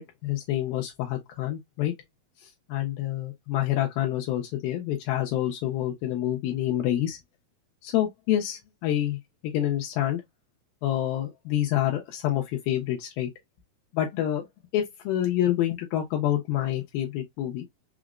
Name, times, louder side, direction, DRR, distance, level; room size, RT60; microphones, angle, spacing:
voice 1, 0.0-1.9 2.7-7.2 7.8-10.2 10.8-13.3 13.9-14.5 14.7-17.6, left 12 dB, 85° left, 2.3 m, -27 dB
5.8 x 2.0 x 2.3 m
omnidirectional pair, 4.3 m